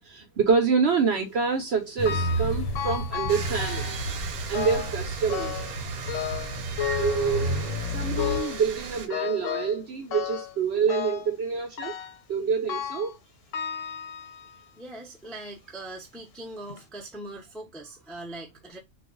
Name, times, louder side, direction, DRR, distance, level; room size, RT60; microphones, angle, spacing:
voice 1, 0.0-4.0 4.5-5.6 7.0-7.6 7.9-12.0 12.3-13.2, right 5 dB, 65° right, 0.7 m, -26 dB
sound 1, 2.0-8.4, equal, 90° left, 1.1 m, -31 dB
sound 2, 2.0-2.5 2.7-4.0 4.5-5.0 5.3-5.8 6.1-7.7 8.2-8.6 9.1-9.8 10.1-10.6 10.9-11.3 11.8-12.2 12.7-13.1 13.5-14.6 15.2-15.3 16.1-16.2 16.7-16.8, left 10 dB, 70° left, 0.9 m, -33 dB
sound 3, 3.3-9.1, right 6 dB, 85° right, 1.1 m, -37 dB
voice 2, 14.8-18.8, right 2 dB, ahead, 0.3 m, -41 dB
2.4 x 2.3 x 3.6 m
omnidirectional pair, 1.5 m